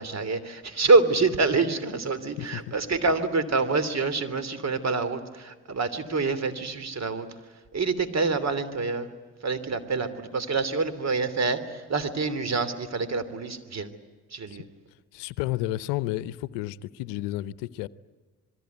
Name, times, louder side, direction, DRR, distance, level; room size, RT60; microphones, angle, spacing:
voice 1, 0.0-7.3 7.7-9.1 9.4-13.9 14.3-14.6, right 3 dB, 40° right, 3.1 m, -26 dB
voice 2, 15.1-17.9, left 16 dB, 75° left, 0.8 m, -31 dB
27.0 x 21.5 x 9.5 m
hypercardioid pair, 55°, 42 cm